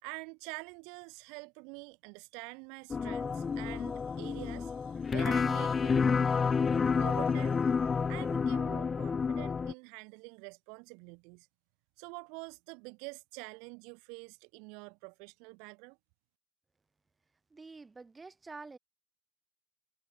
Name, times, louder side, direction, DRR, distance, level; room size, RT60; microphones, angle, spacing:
voice 1, 0.0-6.4 7.0-7.6 8.1-11.5 12.0-16.0, right 34 dB, 80° right, 4.1 m, -46 dB
sound 1, 2.9-9.7, left 5 dB, 20° left, 0.6 m, -30 dB
voice 2, 17.5-18.8, right 3 dB, 10° right, 2.6 m, -48 dB
cardioid pair, 175°, 0 cm